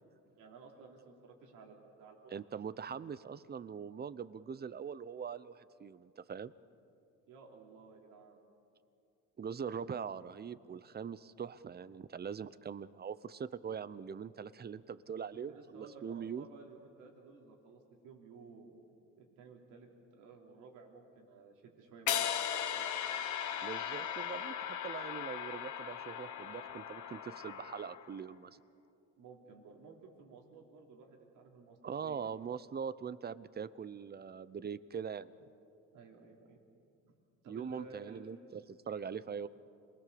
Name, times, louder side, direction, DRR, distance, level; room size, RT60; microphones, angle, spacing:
voice 1, 0.3-2.3 7.3-8.4 15.5-18.8 19.2-22.8 29.2-32.3 35.9-36.6 37.4-38.3 39.0-39.2, right 4 dB, 85° right, 1 dB, 3.5 m, -55 dB
voice 2, 2.3-6.5 9.4-16.5 23.6-28.5 31.8-35.3 37.5-39.5, right 7 dB, 30° right, 16 dB, 0.8 m, -42 dB
sound 1, 22.1-28.2, left 9 dB, 70° left, 1.2 m, -38 dB
27.0 x 20.5 x 6.9 m, 2.5 s
cardioid pair, 95°, 31 cm